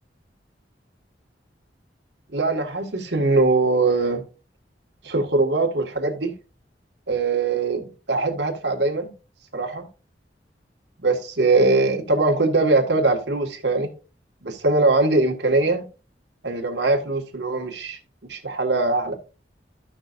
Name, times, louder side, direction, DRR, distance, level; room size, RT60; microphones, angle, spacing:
voice 1, 2.3-4.2 5.0-6.3 7.1-9.1 9.5-9.9 11.0-13.9 14.4-15.8 16.4-18.0 18.3-19.2, right 3 dB, 85° right, 2.0 m, -21 dB
14.0 x 6.1 x 2.6 m
head